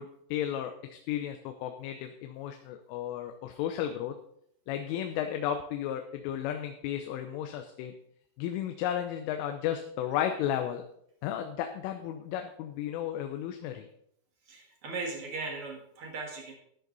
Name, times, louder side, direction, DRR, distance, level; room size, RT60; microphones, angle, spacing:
voice 1, 0.0-4.1 4.7-7.9 8.4-10.9 11.2-13.9, left 10 dB, 80° left, 6 dB, 3.3 m, -34 dB
voice 2, 14.5-16.5, right 3 dB, 55° right, 1 dB, 1.5 m, -38 dB
13.5 x 10.5 x 4.0 m, 0.70 s
omnidirectional pair, 5.8 m